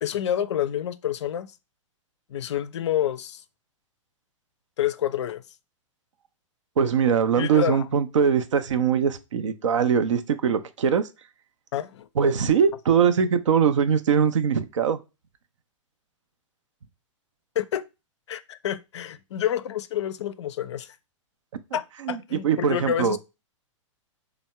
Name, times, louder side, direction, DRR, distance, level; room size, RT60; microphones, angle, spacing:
voice 1, 0.0-1.5 2.3-3.4 4.8-5.4 7.4-7.8 11.7-12.1 17.6-17.8 18.3-21.0 21.7-23.2, left 10 dB, 60° left, 0.4 m, -28 dB
voice 2, 6.8-11.1 12.2-15.0 22.0-23.2, right 7 dB, 65° right, 0.5 m, -22 dB
3.4 x 2.0 x 4.1 m
figure-of-eight pair, 105°, 17 cm